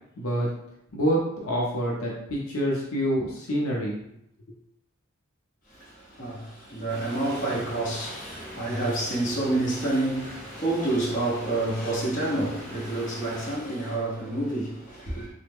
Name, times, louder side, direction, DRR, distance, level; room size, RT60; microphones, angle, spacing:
voice 1, 0.2-0.5 0.9-3.9, equal, 80° left, 0.6 m, -26 dB
voice 2, 5.7-15.3, right 2 dB, 40° left, 1.0 m, -28 dB
sound 1, 6.9-13.6, equal, 10° left, 0.7 m, -43 dB
3.2 x 2.1 x 3.5 m
head